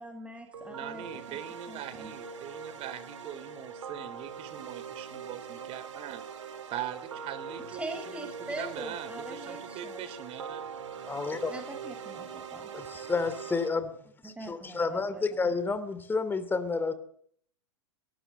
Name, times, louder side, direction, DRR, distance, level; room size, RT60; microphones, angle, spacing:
voice 1, 0.0-1.4 1.7-2.1 7.7-10.0 11.5-12.7 14.2-15.6, right 2 dB, 5° right, 6 dB, 6.5 m, -42 dB
sound 1, 0.5-13.7, right 6 dB, 80° right, 4.5 m, -42 dB
voice 2, 0.7-6.2 6.7-10.7, right 10 dB, 40° right, 14 dB, 3.9 m, -42 dB
voice 3, 11.0-11.5 12.7-13.9 14.2-16.9, left 4 dB, 15° left, 11 dB, 2.7 m, -30 dB
22.5 x 19.5 x 7.8 m, 0.63 s
hypercardioid pair, 110°, 15 cm